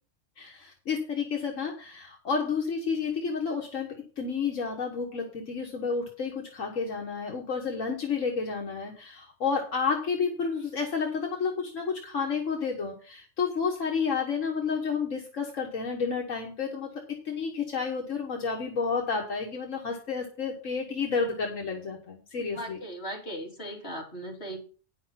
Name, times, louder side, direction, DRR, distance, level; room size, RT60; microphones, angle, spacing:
voice 1, 0.4-3.9 4.2-16.9 17.2-22.8, left 5 dB, 80° left, 1 dB, 1.8 m, -30 dB
voice 2, 22.5-24.6, right 1 dB, 50° left, -2 dB, 3.5 m, -38 dB
9.9 x 6.3 x 5.7 m, 0.39 s
omnidirectional pair, 1.3 m